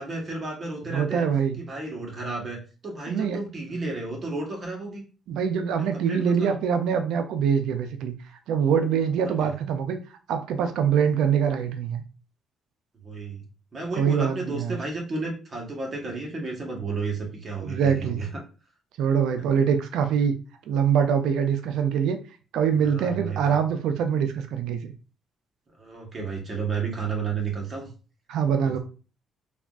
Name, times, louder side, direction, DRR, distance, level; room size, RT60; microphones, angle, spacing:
voice 1, 0.0-1.3 1.6-5.0 5.8-6.6 9.2-9.5 13.0-13.4 13.7-18.4 22.8-23.6 25.8-27.9 28.6-28.8, right 4 dB, 40° right, 0 dB, 1.1 m, -32 dB
voice 2, 0.9-1.6 3.1-3.4 5.3-8.2 8.5-10.0 10.3-12.0 13.9-14.8 17.6-18.2 19.0-20.4 20.7-22.2 22.5-24.9 28.3-28.8, right 7 dB, 80° right, 7 dB, 0.4 m, -24 dB
3.4 x 2.3 x 2.4 m, 0.35 s
cardioid pair, 85°, 0 cm